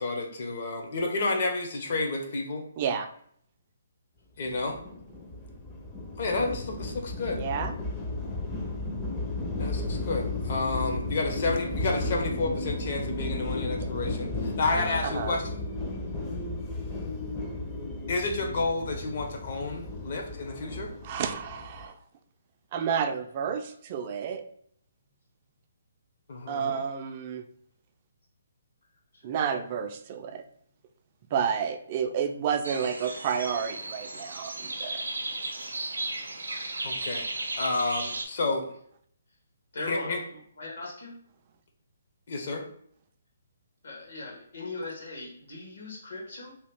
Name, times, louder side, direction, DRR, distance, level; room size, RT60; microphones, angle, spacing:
voice 1, 0.0-2.7 4.4-4.8 6.2-7.4 9.6-15.5 18.1-20.9 26.3-26.8 36.8-37.3 37.6-38.7 39.9-40.2 42.3-42.6, left 3 dB, 50° left, 2 dB, 0.7 m, -30 dB
voice 2, 2.8-3.1 7.4-7.7 15.0-15.4 21.0-21.9 22.7-24.4 26.5-27.4 29.2-30.4 31.3-35.0, right 7 dB, 40° right, 7 dB, 0.3 m, -30 dB
sound 1, 4.4-21.9, left 2 dB, 15° left, 0.5 m, -34 dB
sound 2, 32.6-38.2, right 2 dB, 90° right, 0.5 m, -35 dB
voice 3, 39.7-41.2 43.8-46.5, left 2 dB, 75° left, -2 dB, 1.2 m, -39 dB
2.8 x 2.3 x 3.4 m, 0.64 s
hypercardioid pair, 140°, 0 cm